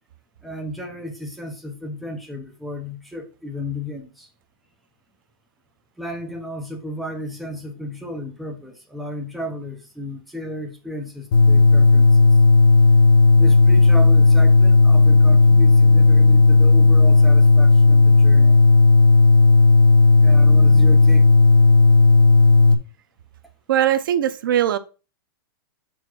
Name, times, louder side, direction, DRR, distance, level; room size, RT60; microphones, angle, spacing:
voice 1, 0.4-4.3 6.0-12.3 13.3-18.6 20.2-21.3, left 1 dB, ahead, 0.8 m, -33 dB
sound 1, 11.3-22.7, left 3 dB, 55° left, 1.1 m, -13 dB
voice 2, 23.7-24.8, right 11 dB, 60° right, 0.7 m, -20 dB
5.2 x 4.8 x 6.1 m
supercardioid pair, 175°, 13 cm